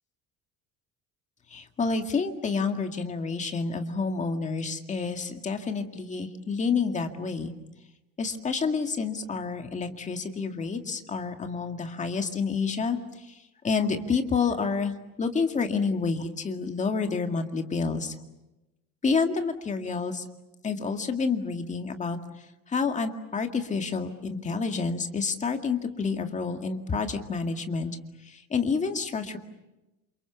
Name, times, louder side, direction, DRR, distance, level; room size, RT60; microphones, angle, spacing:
voice 1, 1.5-7.5 8.2-18.1 19.0-20.2 20.6-22.2 22.7-28.0 28.2-29.4, left 4 dB, 20° left, 6 dB, 2.1 m, -29 dB
28.5 x 27.5 x 7.1 m, 0.99 s
cardioid pair, 180°, 35 cm